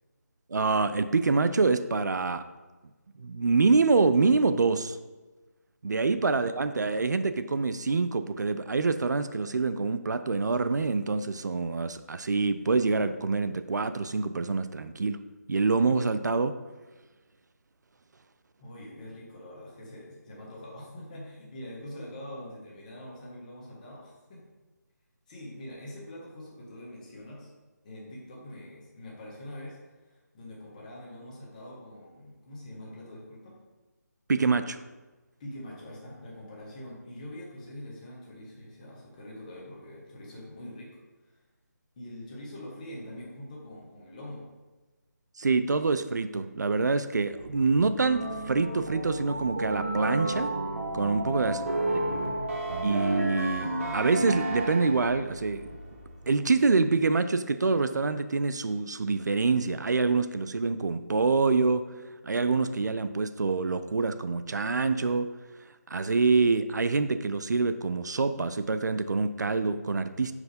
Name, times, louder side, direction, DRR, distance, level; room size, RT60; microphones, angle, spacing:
voice 1, 0.5-2.4 3.2-5.0 5.8-15.2 15.5-16.5 34.3-34.8 45.4-50.5 50.9-51.6 52.0-52.1 52.8-55.7 56.3-61.8 62.2-65.3 65.9-70.3, right 4 dB, 75° right, 11 dB, 0.4 m, -26 dB
voice 2, 18.6-24.4 25.3-27.5 27.8-29.8 30.0-33.6 35.4-41.0 41.2-41.4 42.0-44.4 51.4-52.6, left 1 dB, 25° left, -4 dB, 1.3 m, -44 dB
sound 1, 47.3-56.4, left 1 dB, ahead, 1.1 m, -48 dB
sound 2, 48.0-55.3, right 1 dB, 50° right, 1.1 m, -31 dB
4.8 x 4.3 x 5.1 m, 1.2 s
figure-of-eight pair, 160°, 10 cm